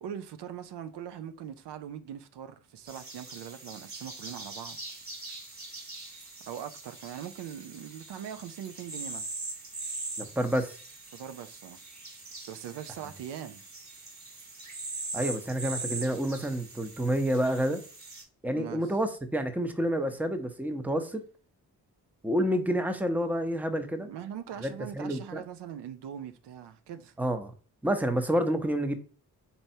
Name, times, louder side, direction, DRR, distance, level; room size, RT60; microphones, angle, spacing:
voice 1, 0.0-5.0 6.5-9.3 11.1-11.8 12.5-13.6 18.5-18.8 23.9-27.1, right 9 dB, 90° right, 0.5 m, -41 dB
sound 1, 2.9-18.2, right 3 dB, 45° right, 1.3 m, -42 dB
voice 2, 10.2-10.8 15.1-17.8 18.4-21.2 22.2-24.1 24.6-25.4 27.2-27.5 27.8-29.0, equal, 5° right, 0.6 m, -29 dB
4.3 x 3.3 x 2.7 m
cardioid pair, 65°, 40 cm